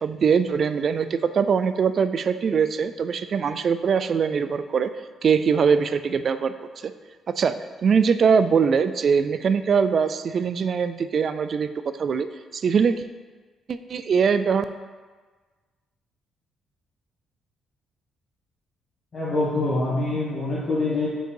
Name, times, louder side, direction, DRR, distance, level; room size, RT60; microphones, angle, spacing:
voice 1, 0.0-4.9 5.2-6.5 6.8-6.9 7.3-7.6 7.8-11.7 12.0-12.3 12.5-13.0 13.7-14.6, right 6 dB, 50° right, 11 dB, 0.3 m, -22 dB
voice 2, 19.1-21.1, left 2 dB, 45° left, -11 dB, 1.8 m, -25 dB
5.4 x 3.8 x 4.5 m, 1.4 s
cardioid pair, 90°, 0 cm